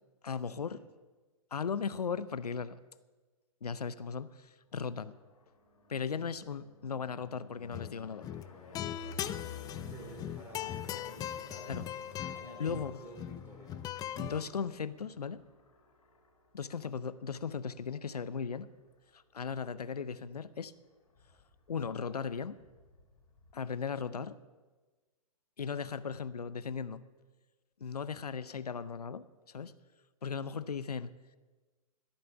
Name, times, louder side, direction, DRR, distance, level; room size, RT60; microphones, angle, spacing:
voice 1, 0.2-0.8 1.5-2.8 3.6-5.1 5.9-8.3 11.7-11.8 12.6-13.0 14.2-15.4 16.5-18.7 19.1-20.7 21.7-22.6 23.5-24.4 25.6-27.0 27.8-29.7 30.2-31.1, left 6 dB, 90° left, 15 dB, 0.6 m, -37 dB
sound 1, 4.9-18.9 19.3-19.8 20.1-20.2 20.4-20.5 20.7-23.5, left 3 dB, 70° left, 3.2 m, -54 dB
sound 2, 7.6-8.0 8.2-14.4, left 11 dB, 20° left, 0.5 m, -40 dB
voice 2, 9.8-11.9 12.3-14.5, equal, 10° right, 1 dB, 3.5 m, -52 dB
14.0 x 8.8 x 7.0 m, 1.3 s
hypercardioid pair, 120°, 19 cm